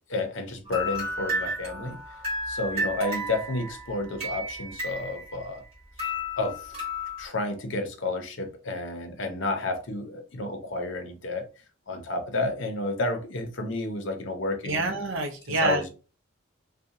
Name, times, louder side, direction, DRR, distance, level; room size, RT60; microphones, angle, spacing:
voice 1, 0.1-2.0 2.5-5.6 6.0-6.1 6.4-6.8 7.2-11.5 11.9-15.0 15.6-15.9, left 2 dB, 65° left, 0.6 m, -31 dB
sound 1, 0.7-5.7 6.0-7.3, left 1 dB, 30° right, 1.4 m, -33 dB
voice 2, 14.6-15.9, right 2 dB, 70° right, 0.6 m, -27 dB
2.8 x 2.2 x 2.4 m
head